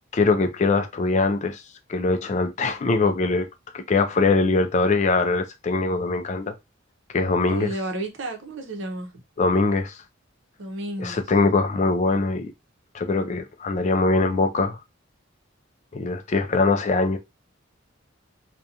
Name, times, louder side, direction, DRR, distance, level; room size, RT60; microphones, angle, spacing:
voice 1, 0.1-1.6 1.9-3.5 3.7-6.5 7.1-7.7 9.4-10.0 11.0-12.5 12.9-14.8 15.9-17.2, left 3 dB, 35° left, 0.3 m, -22 dB
voice 2, 7.5-9.1 10.6-11.2, right 1 dB, 65° right, 0.7 m, -31 dB
2.4 x 2.2 x 2.7 m
head